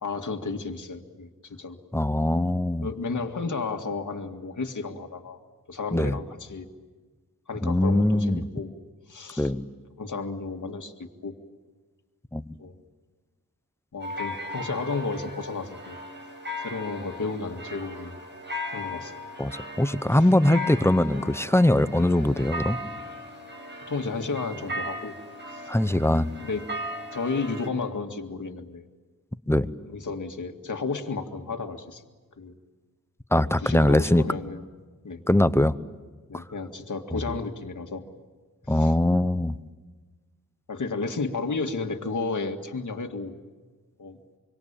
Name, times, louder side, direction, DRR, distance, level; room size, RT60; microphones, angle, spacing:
voice 1, 0.0-1.8 2.8-5.4 5.7-6.7 7.5-8.7 9.1-9.5 10.0-11.4 12.6-12.7 13.9-16.0 16.6-18.2 18.7-19.1 23.9-25.2 25.5-25.7 26.4-26.7 27.1-28.9 29.8-32.0 32.4-32.6 33.6-34.6 35.0-35.2 36.3-38.1 38.7-39.0 39.2-39.4 40.7-43.4 44.0-44.2, left 4 dB, 60° left, 5 dB, 2.1 m, -32 dB
voice 2, 1.9-2.9 5.9-6.2 7.6-8.4 9.4-9.7 12.3-12.4 19.4-22.8 25.7-26.3 29.5-29.7 33.3-34.2 35.3-35.7 36.3-36.4 37.1-37.2 38.7-39.6, left 1 dB, 10° left, 14 dB, 0.8 m, -22 dB
sound 1, 14.0-27.7, left 1 dB, 35° right, 5.7 m, -37 dB
25.5 x 25.0 x 8.9 m, 1.3 s
wide cardioid pair, 105°, 34 cm